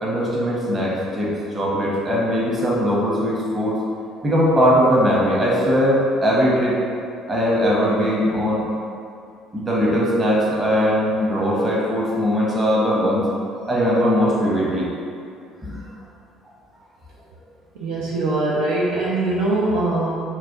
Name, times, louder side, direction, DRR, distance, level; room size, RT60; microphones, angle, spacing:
voice 1, 0.0-3.8 4.2-6.8 7.3-8.6 9.5-13.3 13.7-14.9 15.6-15.8, equal, 30° right, -5 dB, 1.0 m, -20 dB
voice 2, 17.7-20.2, right 2 dB, 75° right, -6 dB, 0.5 m, -22 dB
3.1 x 2.3 x 3.8 m, 2.5 s
hypercardioid pair, 60°, 0 cm